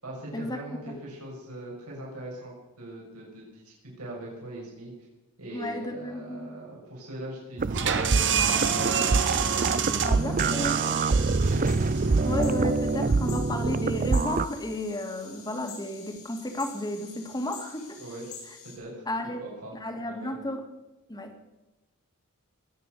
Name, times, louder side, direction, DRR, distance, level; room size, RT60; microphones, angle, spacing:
voice 1, 0.0-4.9 5.4-11.6 18.0-18.3 18.8-19.0 19.4-20.3, right 1 dB, 80° right, -3 dB, 7.0 m, -41 dB
voice 2, 5.5-6.6 10.0-10.7 12.3-18.0 19.1-19.4 19.7-20.6 21.1-21.3, left 1 dB, 20° left, 5 dB, 2.2 m, -33 dB
sound 1, 7.6-14.5, right 3 dB, 40° right, 0.5 m, -25 dB
sound 2, 7.7-13.2, right 7 dB, 55° right, 1.6 m, -29 dB
sound 3, 9.4-18.8, left 6 dB, 90° left, 7.7 m, -47 dB
21.5 x 9.6 x 6.8 m, 1.0 s
head